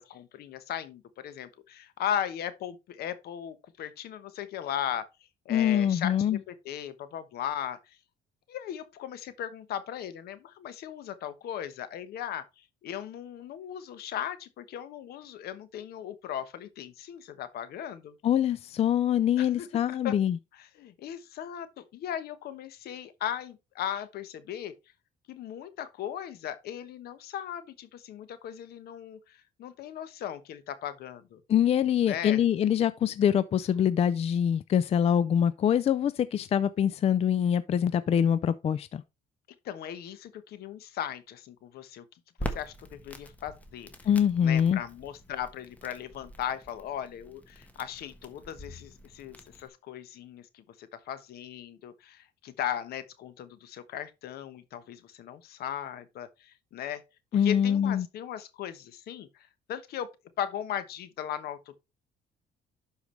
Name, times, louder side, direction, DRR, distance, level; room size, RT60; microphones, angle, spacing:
voice 1, 0.0-5.1 5.4-8.0 8.5-18.1 19.4-20.2 20.5-24.7 25.3-31.4 32.0-32.4 39.6-42.0 42.4-44.1 44.4-57.0 57.3-60.1 60.4-61.8, left 10 dB, 70° left, 1.1 m, -37 dB
voice 2, 5.5-6.4 18.2-20.4 31.5-39.0 44.1-44.8 57.3-58.1, left 9 dB, 35° left, 0.4 m, -24 dB
Crackle, 42.4-49.7, equal, 10° left, 1.3 m, -44 dB
11.5 x 4.8 x 3.3 m
cardioid pair, 110°, 17 cm